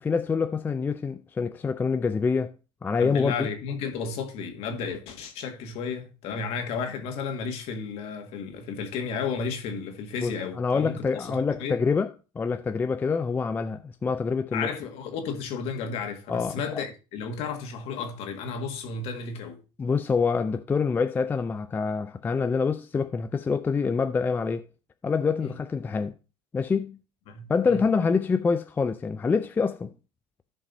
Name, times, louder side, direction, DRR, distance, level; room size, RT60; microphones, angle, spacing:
voice 1, 0.0-2.5 2.8-3.5 10.2-12.1 12.4-14.7 16.3-16.9 19.8-24.6 25.0-26.1 26.5-27.0 27.5-29.9, left 5 dB, 15° left, 0.4 m, -26 dB
voice 2, 3.0-11.8 14.5-19.6 25.4-25.6 27.3-27.9, left 5 dB, 55° left, 1.9 m, -33 dB
14.5 x 5.3 x 2.7 m
supercardioid pair, 125°, 12 cm